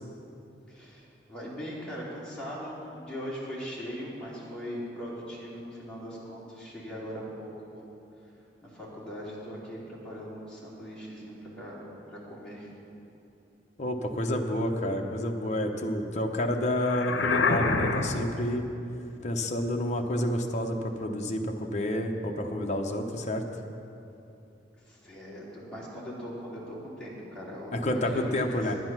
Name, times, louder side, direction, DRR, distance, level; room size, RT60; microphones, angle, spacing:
voice 1, 0.7-7.9 8.6-12.7 24.8-28.6, equal, 5° left, -8 dB, 2.8 m, -40 dB
voice 2, 13.8-18.6 19.2-23.4 27.7-28.8, left 1 dB, 40° left, 2 dB, 0.8 m, -29 dB
sound 1, 16.8-18.4, left 3 dB, 75° left, 0.8 m, -26 dB
10.0 x 9.7 x 6.0 m, 2.8 s
head